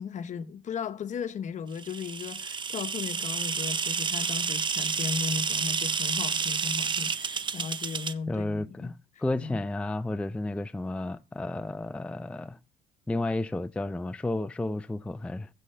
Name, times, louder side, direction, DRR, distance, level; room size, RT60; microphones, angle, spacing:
voice 1, 0.0-9.6, left 6 dB, 45° left, 0.9 m, -36 dB
sound 1, 1.8-8.1, right 5 dB, 30° right, 0.6 m, -30 dB
voice 2, 8.3-12.6 13.1-15.5, left 2 dB, 5° left, 0.4 m, -32 dB
15.0 x 6.3 x 3.3 m
cardioid pair, 110°, 17 cm